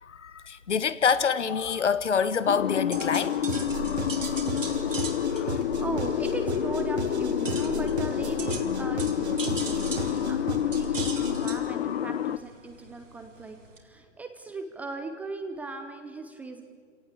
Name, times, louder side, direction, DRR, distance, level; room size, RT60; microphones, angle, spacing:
voice 1, 0.0-3.5 5.3-5.5, left 6 dB, 70° left, 1.3 m, -26 dB
sound 1, 2.0-13.8, right 4 dB, 85° right, 3.5 m, -41 dB
sound 2, 2.5-12.4, left 10 dB, 55° left, 0.8 m, -28 dB
sound 3, 3.5-11.5, right 4 dB, 60° right, 2.5 m, -36 dB
voice 2, 5.3-16.6, right 3 dB, 5° right, 0.5 m, -39 dB
27.5 x 17.5 x 8.2 m
figure-of-eight pair, 135°, 37 cm